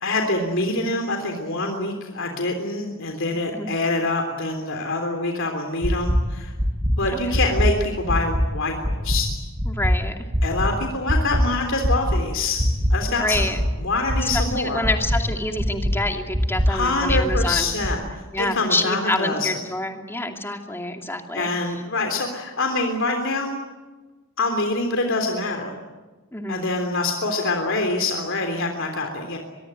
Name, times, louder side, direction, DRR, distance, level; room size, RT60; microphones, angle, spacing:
voice 1, 0.0-6.5 7.0-9.3 10.4-13.5 13.8-14.8 16.7-19.6 21.3-23.5 24.4-25.7 26.5-29.4, left 2 dB, 65° left, 4 dB, 3.4 m, -25 dB
sound 1, 5.8-6.2 6.6-6.9 7.3-7.7 8.1-8.4 8.8-9.2 9.6-9.9 10.3-10.7 11.1-11.4 11.8-12.2 12.6-12.9 13.3-13.7 14.1-14.4 14.8-15.2 15.6-15.9 16.3-16.7 17.1-17.4 17.8-17.9, equal, 30° right, 7.4 m, -23 dB
voice 2, 9.6-10.1 13.1-13.6 14.2-17.7 18.3-21.5 26.3-26.7, left 2 dB, 10° left, 4 dB, 2.6 m, -27 dB
24.0 x 23.0 x 9.2 m, 1.2 s
head